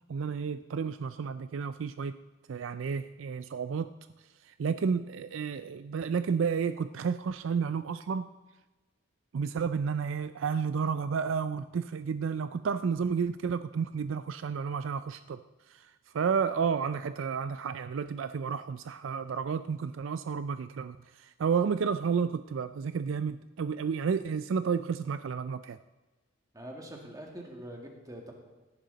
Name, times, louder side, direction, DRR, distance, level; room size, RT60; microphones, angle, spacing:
voice 1, 0.1-2.2 2.5-3.9 4.4-8.3 9.3-15.4 15.7-25.8, right 6 dB, 65° right, 12 dB, 0.4 m, -31 dB
voice 2, 26.5-28.3, right 1 dB, 15° right, 1 dB, 2.1 m, -44 dB
17.0 x 10.5 x 4.0 m, 1.2 s
head